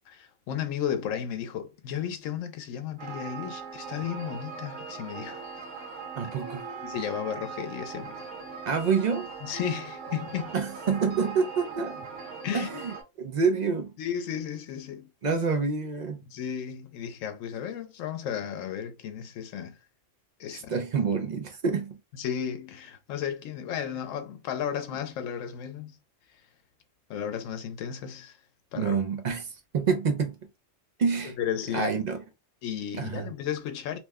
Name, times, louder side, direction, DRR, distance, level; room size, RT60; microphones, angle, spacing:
voice 1, 0.1-5.4 6.8-8.3 9.4-10.5 12.4-12.7 14.0-15.1 16.3-19.8 20.4-20.8 22.1-26.0 27.1-28.4 28.7-29.0 31.4-31.9 32.6-34.0, left 9 dB, 85° left, 1.0 m, -34 dB
sound 1, 3.0-13.0, right 5 dB, 80° right, 1.2 m, -40 dB
voice 2, 6.2-6.7 8.7-9.3 10.5-12.0 12.5-13.9 15.2-16.2 20.5-22.0 28.8-30.4 31.0-31.4 31.7-32.2 32.9-33.3, right 5 dB, 55° right, 0.5 m, -27 dB
2.9 x 2.1 x 3.4 m
omnidirectional pair, 1.3 m